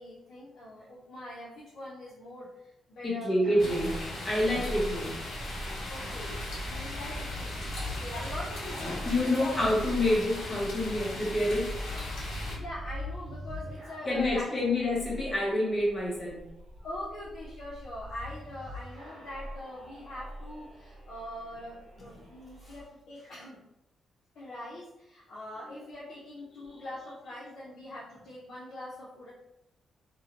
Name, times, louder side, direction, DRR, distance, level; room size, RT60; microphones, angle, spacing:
voice 1, 0.0-3.7 5.9-9.9 12.3-14.6 16.8-23.6 24.4-29.3, left 1 dB, 60° left, -7 dB, 0.5 m, -43 dB
voice 2, 3.0-4.0 4.2-5.2 6.6-6.7 9.0-11.8 14.1-16.5 22.6-22.7, left 1 dB, 25° left, -5 dB, 0.8 m, -28 dB
sound 1, 3.4-22.8, equal, 65° right, 1.1 m, -42 dB
sound 2, 3.6-12.6, left 1 dB, 80° left, 0.9 m, -38 dB
2.6 x 2.1 x 2.8 m, 0.89 s
wide cardioid pair, 170°, 0 cm